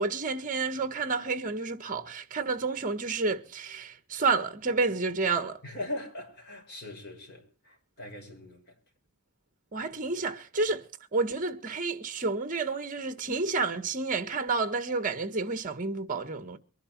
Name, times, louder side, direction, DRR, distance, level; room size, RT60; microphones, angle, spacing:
voice 1, 0.0-5.6 9.7-10.8 11.1-16.6, right 4 dB, 40° right, 1.5 m, -30 dB
voice 2, 5.6-8.6, left 1 dB, 50° left, 6.6 m, -40 dB
23.0 x 11.5 x 4.6 m
head